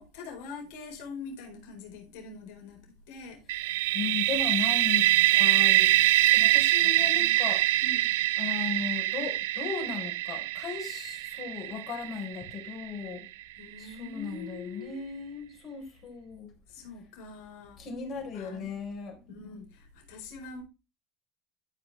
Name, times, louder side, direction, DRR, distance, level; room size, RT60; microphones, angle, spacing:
voice 1, 0.0-2.8 3.1-3.4 5.5-5.9 6.8-7.4 7.8-8.1 13.6-15.0 16.7-17.8 18.3-18.7 19.3-20.6, left 4 dB, 70° left, 4.5 m, -44 dB
sound 1, 3.5-13.2, right 17 dB, 85° right, 0.4 m, -25 dB
voice 2, 3.9-7.6 8.4-13.3 13.8-16.5 17.8-19.2, left 6 dB, 45° left, 4.4 m, -37 dB
14.0 x 5.3 x 3.4 m
supercardioid pair, 100°, 0 cm